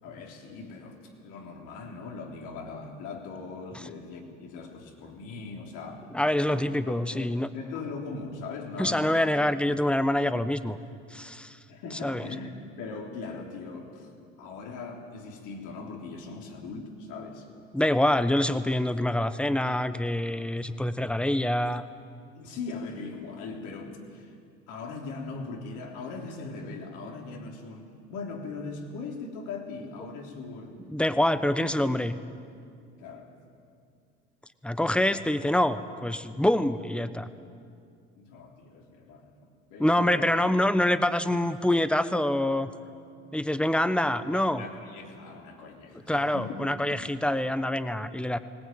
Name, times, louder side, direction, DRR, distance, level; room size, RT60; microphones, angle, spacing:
voice 1, 0.0-6.1 6.5-9.2 11.7-12.5 12.8-17.5 22.3-24.4 24.7-30.8 31.6-31.9 33.0-33.3 38.2-39.3 39.7-40.3 44.3-47.5, left 4 dB, 75° left, 1 dB, 3.7 m, -40 dB
voice 2, 6.1-7.5 8.8-10.8 11.1-11.6 12.0-12.3 17.7-21.9 30.9-32.1 34.6-37.3 39.8-42.7 43.3-44.6 46.1-48.4, left 1 dB, 5° left, 12 dB, 1.1 m, -26 dB
20.0 x 18.5 x 9.3 m, 2.4 s
supercardioid pair, 75°, 31 cm